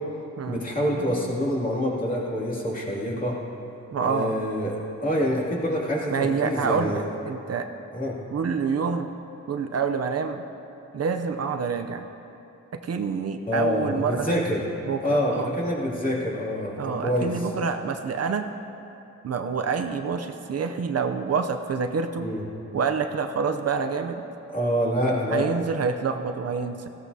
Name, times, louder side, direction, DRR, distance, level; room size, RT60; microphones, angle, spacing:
voice 1, 0.5-3.4 4.0-7.0 7.9-8.2 13.5-14.6 15.0-17.5 22.2-22.4 24.5-25.5, equal, 30° left, -5 dB, 2.5 m, -26 dB
sound 1, 0.9-4.1, left 5 dB, 80° left, 2.7 m, -44 dB
voice 2, 3.9-4.3 6.1-7.7 8.3-9.1 9.5-10.4 10.9-12.1 12.7-14.4 14.8-15.5 16.8-18.5 19.2-22.3 22.7-24.2 25.3-26.9, right 5 dB, 55° right, 6 dB, 0.6 m, -27 dB
19.5 x 15.0 x 2.8 m, 2.9 s
wide cardioid pair, 150°, 29 cm